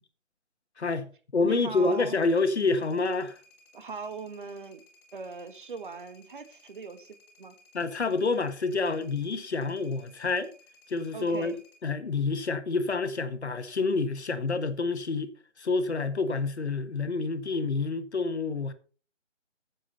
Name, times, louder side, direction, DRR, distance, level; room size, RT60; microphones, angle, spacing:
voice 1, 0.8-3.4 7.7-10.5 10.9-11.6 11.8-15.3 15.6-18.7, left 3 dB, 60° left, 1.7 m, -28 dB
voice 2, 1.4-2.2 3.7-4.8 5.1-7.6 11.1-11.6, right 5 dB, 45° right, 1.8 m, -40 dB
sound 1, 1.7-11.8, left 1 dB, 20° left, 3.2 m, -59 dB
15.0 x 7.6 x 4.3 m
figure-of-eight pair, 160°, 37 cm